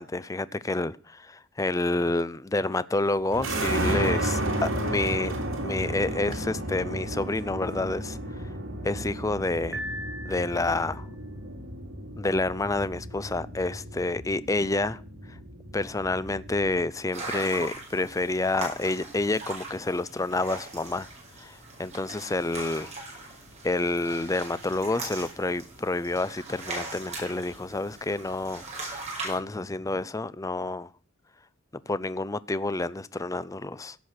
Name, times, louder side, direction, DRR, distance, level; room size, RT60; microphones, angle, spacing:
voice 1, 0.0-5.3 5.6-8.2 8.8-9.8 10.2-11.1 12.2-15.0 15.7-21.1 21.4-22.9 23.6-29.0 29.2-30.9 31.9-34.0, left 2 dB, 15° left, 0.5 m, -29 dB
sound 1, 3.3-16.9, right 1 dB, 75° right, 2.8 m, -33 dB
Piano, 9.7-11.0, equal, 5° right, 1.9 m, -38 dB
sound 2, 17.1-29.4, right 2 dB, 35° right, 5.8 m, -40 dB
16.5 x 6.2 x 6.6 m
head